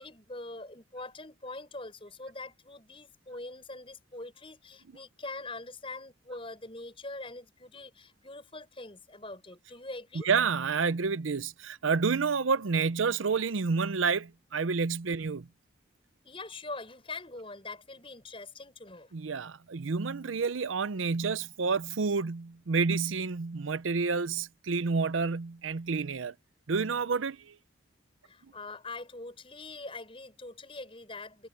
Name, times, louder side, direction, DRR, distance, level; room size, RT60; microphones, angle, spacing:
voice 1, 0.0-10.3 16.2-19.1 28.2-31.5, left 2 dB, 30° left, 7.0 m, -43 dB
voice 2, 10.2-15.5 19.1-26.3 26.7-27.6, right 5 dB, 85° right, 0.6 m, -29 dB
head